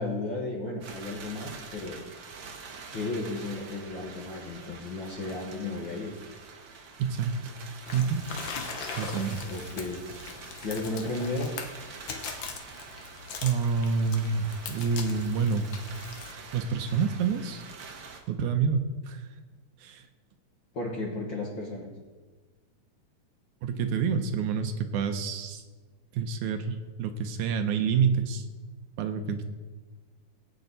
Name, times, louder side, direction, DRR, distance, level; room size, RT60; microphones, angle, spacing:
voice 1, 0.0-2.0 2.9-6.2 9.5-10.0 10.6-11.5 20.7-21.9, left 2 dB, 50° left, -1 dB, 1.5 m, -34 dB
sound 1, 0.8-18.2, right 5 dB, 60° right, 1.3 m, -46 dB
voice 2, 7.0-7.5 7.9-8.2 9.0-9.4 13.4-15.7 16.5-17.6 18.3-18.8 19.1-19.3 19.8-20.0 23.6-25.6 26.1-28.4 29.0-29.4, right 6 dB, 75° right, 7 dB, 2.1 m, -28 dB
sound 2, 7.9-16.3, left 5 dB, 80° left, 1.0 m, -41 dB
17.5 x 8.8 x 4.0 m, 1.3 s
omnidirectional pair, 3.6 m